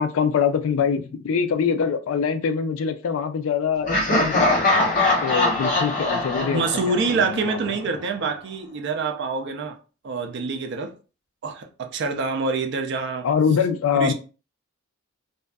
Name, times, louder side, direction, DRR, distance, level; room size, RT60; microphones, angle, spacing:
voice 1, 0.0-4.7 5.2-7.6 13.2-14.1, left 6 dB, 70° left, 0.3 m, -24 dB
Laughter, 3.9-7.7, left 2 dB, 40° left, 0.9 m, -22 dB
voice 2, 6.5-9.8 10.0-10.9 11.4-13.3 13.9-14.1, right 4 dB, 55° right, 0.4 m, -26 dB
2.6 x 2.3 x 2.2 m
head